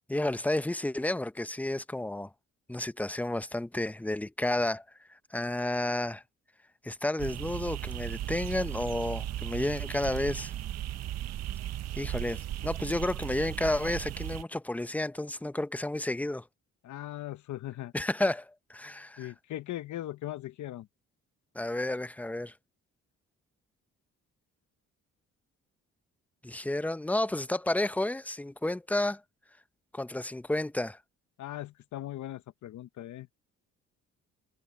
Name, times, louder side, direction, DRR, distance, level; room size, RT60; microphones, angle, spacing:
voice 1, 0.1-2.3 2.7-4.8 5.1-6.2 6.8-10.5 12.0-16.4 17.9-19.3 21.5-22.5 26.4-29.2 29.9-31.0, left 1 dB, 5° left, 0.7 m, -31 dB
sound 1, 7.2-14.4, right 12 dB, 60° right, 0.6 m, -36 dB
voice 2, 16.8-17.9 19.2-20.9 31.4-33.3, left 14 dB, 70° left, 1.0 m, -39 dB
cardioid pair, 90°, 30 cm